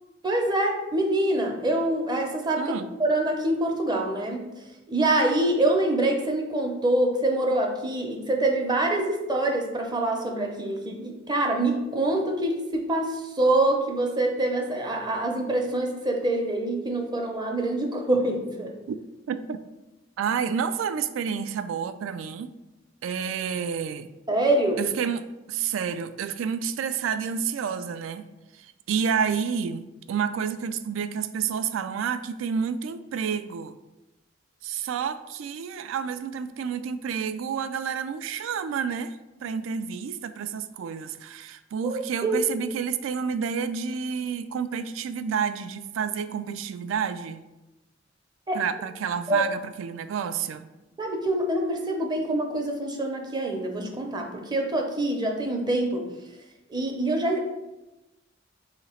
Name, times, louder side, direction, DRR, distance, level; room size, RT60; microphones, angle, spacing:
voice 1, 0.2-4.4 4.9-18.7 24.3-24.8 41.8-42.4 48.5-48.6 49.3-49.5 51.0-56.1 56.7-57.4, right 1 dB, 20° right, 2 dB, 0.6 m, -25 dB
voice 2, 2.6-2.9 18.9-19.0 19.3-19.6 20.2-22.5 23.0-24.1 24.8-28.2 28.5-33.7 34.6-47.4 48.5-50.7, right 7 dB, 80° right, 11 dB, 0.3 m, -29 dB
3.9 x 2.9 x 4.3 m, 1.0 s
head